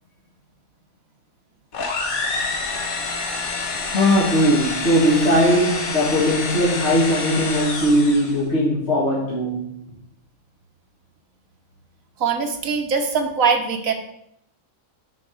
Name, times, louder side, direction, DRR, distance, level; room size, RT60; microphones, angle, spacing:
sound 1, 1.7-8.4, left 3 dB, 75° left, 1.6 m, -27 dB
voice 1, 3.9-9.8, equal, 50° left, 2.0 m, -19 dB
voice 2, 12.2-13.9, right 5 dB, 70° right, 1.5 m, -21 dB
6.6 x 4.9 x 6.3 m
omnidirectional pair, 1.5 m